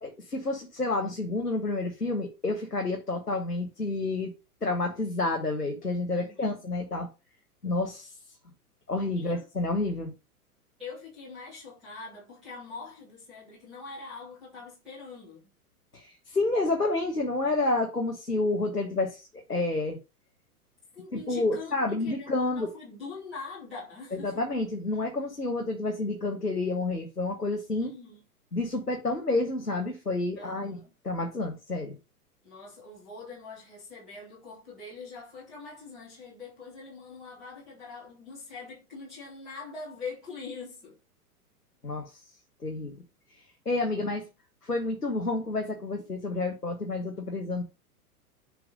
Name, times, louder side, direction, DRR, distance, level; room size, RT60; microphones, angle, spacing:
voice 1, 0.0-4.3 4.6-7.1 7.6-8.1 8.9-10.1 15.9-20.0 21.1-22.7 24.1-27.9 28.5-30.8 31.0-32.0 41.8-42.0 42.6-42.9 43.6-44.2 44.6-47.6, left 2 dB, 90° left, 1.5 m, -29 dB
voice 2, 6.1-6.6 9.1-9.4 10.8-15.4 20.9-24.4 27.8-28.2 30.4-30.9 32.4-41.0 43.9-44.0, left 4 dB, ahead, 0.3 m, -43 dB
6.9 x 3.5 x 5.2 m
figure-of-eight pair, 105°, 45 cm